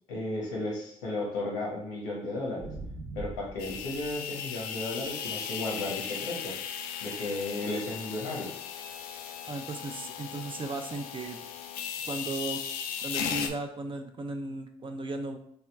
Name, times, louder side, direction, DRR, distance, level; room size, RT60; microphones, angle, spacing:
voice 1, 0.1-2.7 3.1-6.5 7.0-8.5, left 2 dB, 90° left, -3 dB, 1.0 m, -34 dB
sound 1, 2.6-4.2 5.0-5.2 11.0-11.1, right 3 dB, 65° right, 0.7 m, -42 dB
sound 2, 3.6-13.5, left 8 dB, 75° left, 0.4 m, -37 dB
voice 2, 9.5-11.5 12.1-12.6 13.0-15.4, right 2 dB, 35° right, 5 dB, 0.5 m, -36 dB
3.5 x 2.3 x 3.4 m, 0.70 s
hypercardioid pair, 45°, 15 cm